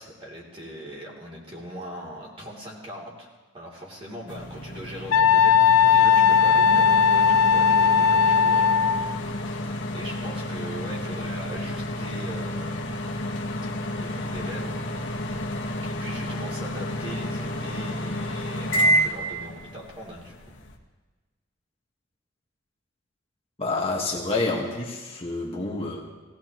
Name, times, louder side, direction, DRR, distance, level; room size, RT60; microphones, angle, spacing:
voice 1, 0.0-9.4 9.9-13.1 14.0-14.8 15.8-20.5, equal, 30° right, -4 dB, 3.0 m, -40 dB
sound 1, 4.3-20.8, equal, 65° left, 1.6 m, -30 dB
Wind instrument woodwind instrument, 5.1-9.2, left 6 dB, 85° left, 0.4 m, -18 dB
voice 2, 23.6-26.0, left 3 dB, 30° left, -2 dB, 1.6 m, -28 dB
18.5 x 17.0 x 3.1 m, 1.3 s
head